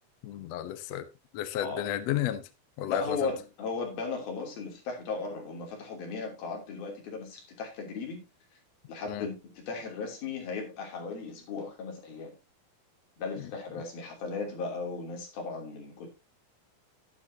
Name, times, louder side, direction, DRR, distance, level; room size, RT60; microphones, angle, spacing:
voice 1, 0.2-1.1 1.3-2.5 2.8-3.3 9.1-9.3, left 11 dB, 65° left, 1.7 m, -32 dB
voice 2, 1.6-1.9 2.8-8.2 8.9-12.3 13.2-16.1, left 4 dB, 85° left, 5.0 m, -36 dB
11.5 x 11.0 x 2.8 m
omnidirectional pair, 4.1 m